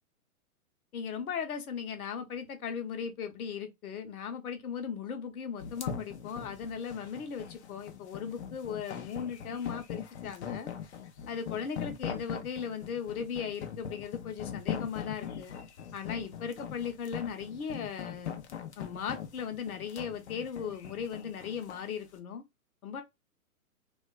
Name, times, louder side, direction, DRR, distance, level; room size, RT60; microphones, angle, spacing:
voice 1, 0.9-10.7 11.3-15.5 15.9-18.3 18.8-22.4 22.8-23.0, left 7 dB, 75° left, 0.9 m, -37 dB
sound 1, 5.6-21.9, left 8 dB, 50° left, 0.6 m, -40 dB
2.4 x 2.3 x 2.2 m
hypercardioid pair, 145°, 45 cm